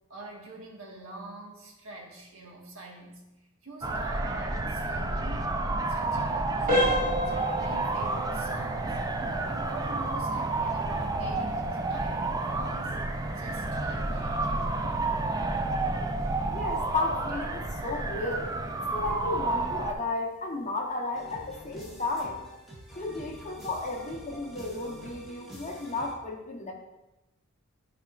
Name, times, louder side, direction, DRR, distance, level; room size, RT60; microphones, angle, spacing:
voice 1, 0.1-3.2 3.6-5.6 5.9-13.0 13.3-15.1, right 2 dB, 65° right, -2 dB, 1.5 m, -45 dB
sound 1, 3.8-19.9, right 2 dB, 15° right, 0.3 m, -30 dB
sound 2, 6.7-17.3 17.7-17.9 18.5-18.6 19.1-19.3, equal, 40° right, 1.4 m, -35 dB
voice 2, 16.5-18.5 18.9-22.4 23.0-26.7, left 3 dB, 35° left, 1 dB, 0.9 m, -33 dB
sound 3, 21.1-26.1, equal, ahead, 1.7 m, -46 dB
10.5 x 5.0 x 2.4 m, 0.99 s
head